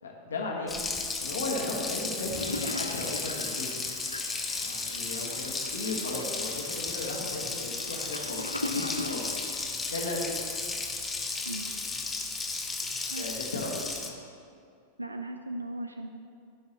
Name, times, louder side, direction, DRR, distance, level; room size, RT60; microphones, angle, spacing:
voice 1, 0.0-0.8 1.2-3.7 4.6-9.2 9.9-10.4 13.2-14.2, left 2 dB, 70° left, -1 dB, 1.6 m, -36 dB
Water tap faucet, 0.7-14.1, left 3 dB, 15° left, 0.9 m, -34 dB
Toilet flush, 2.4-10.4 10.9-11.0 11.2-11.3, left 2 dB, 85° left, 0.4 m, -39 dB
voice 2, 15.0-16.1, right 1 dB, 85° right, 6 dB, 0.4 m, -37 dB
14.5 x 5.5 x 3.0 m, 2.4 s
figure-of-eight pair, 90°, 0 cm